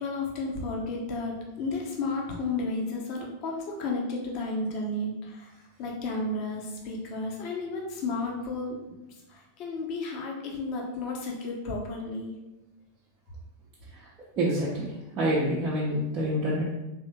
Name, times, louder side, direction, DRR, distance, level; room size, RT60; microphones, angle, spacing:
voice 1, 0.0-5.5 5.8-9.0 9.3-12.3, left 3 dB, 40° left, -1 dB, 0.8 m, -32 dB
voice 2, 14.4-16.7, right 1 dB, 35° right, -6 dB, 0.7 m, -27 dB
3.4 x 3.1 x 3.1 m, 0.99 s
figure-of-eight pair, 90°, 0 cm